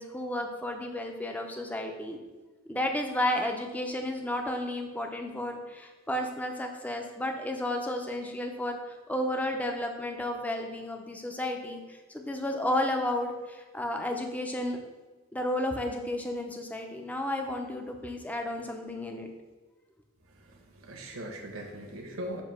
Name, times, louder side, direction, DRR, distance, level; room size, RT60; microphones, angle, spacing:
voice 1, 0.0-2.2 2.7-14.8 15.3-19.3, left 1 dB, 5° left, 3 dB, 0.5 m, -32 dB
voice 2, 20.3-22.4, right 1 dB, 75° right, 2 dB, 1.0 m, -40 dB
6.7 x 2.7 x 5.6 m, 1.2 s
head